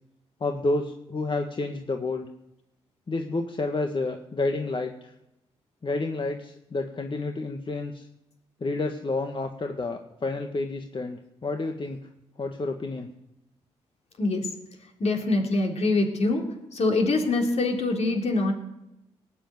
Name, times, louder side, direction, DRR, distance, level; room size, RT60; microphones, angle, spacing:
voice 1, 0.4-2.3 3.1-5.1 5.8-8.1 8.6-12.0 12.4-13.1, left 2 dB, 40° left, 4 dB, 1.7 m, -30 dB
voice 2, 15.0-16.4 16.7-18.5, left 2 dB, 60° left, 1 dB, 3.8 m, -24 dB
18.5 x 7.4 x 9.5 m, 0.88 s
hypercardioid pair, 45°, 13 cm